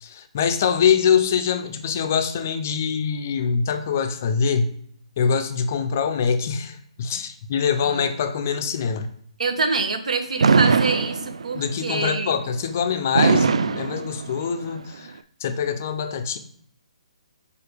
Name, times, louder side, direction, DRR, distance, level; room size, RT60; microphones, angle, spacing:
voice 1, 0.0-4.8 5.2-9.1 11.5-15.1 15.4-16.4, left 6 dB, 25° left, 9 dB, 0.4 m, -24 dB
voice 2, 9.4-12.3, right 4 dB, 90° right, 6 dB, 1.3 m, -26 dB
Fireworks, 10.4-11.7 13.2-14.7, right 5 dB, 60° right, 0.4 m, -20 dB
4.9 x 4.8 x 5.0 m, 0.66 s
hypercardioid pair, 180°, 4 cm